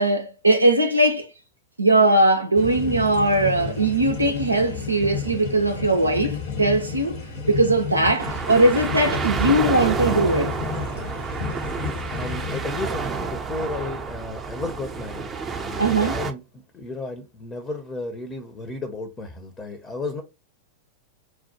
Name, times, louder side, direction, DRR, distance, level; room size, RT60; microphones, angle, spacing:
voice 1, 0.0-1.3 1.8-7.2 7.5-10.6 15.8-16.1, right 2 dB, 85° right, 0.4 m, -20 dB
sound 1, 2.5-12.6, left 6 dB, 55° left, 1.2 m, -32 dB
sound 2, 8.2-16.3, right 5 dB, 20° right, 0.5 m, -29 dB
voice 2, 11.9-16.4 16.7-20.2, left 3 dB, 20° left, 0.7 m, -33 dB
4.4 x 2.2 x 2.8 m
figure-of-eight pair, 90°, 0 cm